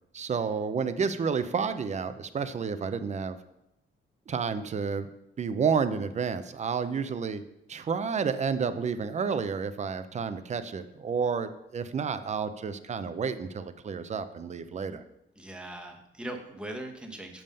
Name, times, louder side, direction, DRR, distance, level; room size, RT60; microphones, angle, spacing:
voice 1, 0.1-3.4 4.3-5.1 5.4-7.4 7.7-15.0, right 6 dB, 35° right, 11 dB, 0.5 m, -30 dB
voice 2, 15.4-17.4, right 1 dB, 5° right, 2 dB, 1.0 m, -40 dB
7.0 x 5.5 x 5.3 m, 0.85 s
wide cardioid pair, 135°, 20 cm